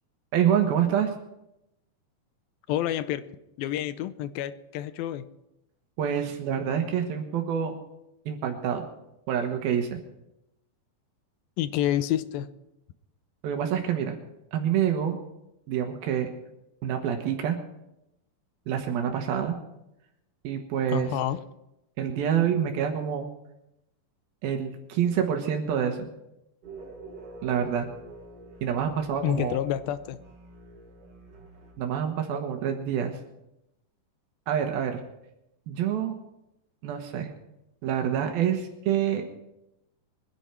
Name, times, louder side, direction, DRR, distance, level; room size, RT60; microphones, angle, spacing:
voice 1, 0.3-1.1 6.0-7.8 8.3-8.9 9.3-10.0 13.4-14.2 14.5-15.2 15.7-16.3 16.8-17.6 18.7-19.6 20.4-21.1 22.0-23.3 24.4-26.1 27.4-27.9 28.6-29.6 31.8-33.2 34.5-35.0 35.7-36.1 36.8-37.3 37.8-39.2, right 9 dB, 85° right, 4 dB, 3.2 m, -27 dB
voice 2, 2.7-3.3 3.6-5.2 11.6-12.5 20.9-21.4 29.2-30.2, left 11 dB, 85° left, 13 dB, 2.5 m, -28 dB
sound 1, 26.6-32.1, right 3 dB, 60° right, 4.1 m, -47 dB
23.0 x 11.0 x 4.5 m, 0.88 s
omnidirectional pair, 4.2 m